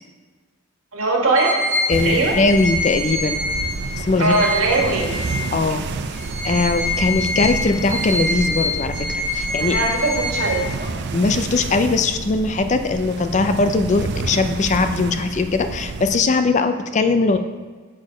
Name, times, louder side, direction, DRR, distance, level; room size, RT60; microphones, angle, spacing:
voice 1, 0.9-1.6 2.0-2.4 4.2-5.1 9.6-10.6, right 2 dB, 80° right, -1 dB, 1.7 m, -20 dB
sound 1, 1.4-5.7 6.1-11.0, left 1 dB, 35° right, 1.2 m, -26 dB
voice 2, 1.9-3.4 4.0-4.4 5.5-5.8 6.4-9.8 11.1-17.4, left 3 dB, 35° left, 9 dB, 0.4 m, -20 dB
sound 2, 1.9-16.2, right 3 dB, 55° right, 0.4 m, -29 dB
6.4 x 6.3 x 4.9 m, 1.4 s
head